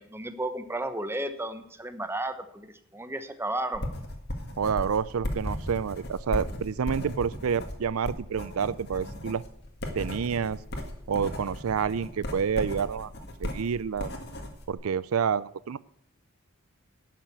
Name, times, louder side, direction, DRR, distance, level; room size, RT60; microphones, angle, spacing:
voice 1, 0.0-2.7 2.9-3.8, right 1 dB, 10° right, 9 dB, 0.9 m, -33 dB
sound 1, 3.7-14.7, left 1 dB, 50° left, 1.9 m, -36 dB
voice 2, 4.6-9.4 9.9-10.6 11.1-13.1 13.4-14.1 14.7-15.8, right 6 dB, 90° right, 19 dB, 0.4 m, -28 dB
11.5 x 7.3 x 8.2 m, 0.73 s
head